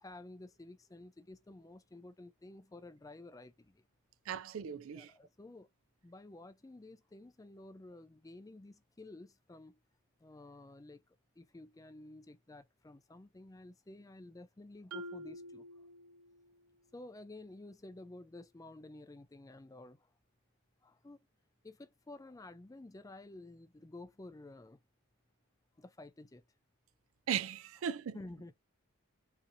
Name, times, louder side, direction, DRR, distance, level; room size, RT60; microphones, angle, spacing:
voice 1, 0.0-3.8 4.9-5.7 6.0-9.8 10.2-15.9 16.9-20.1 20.8-21.3 21.6-24.8 25.8-26.4 28.1-28.5, left 2 dB, 15° left, 0.3 m, -52 dB
voice 2, 4.3-5.1 27.3-28.2, right 8 dB, 65° right, 0.4 m, -37 dB
Marimba xylophone, 14.9-16.7, right 1 dB, 85° right, 0.8 m, -48 dB
3.7 x 2.7 x 2.7 m
head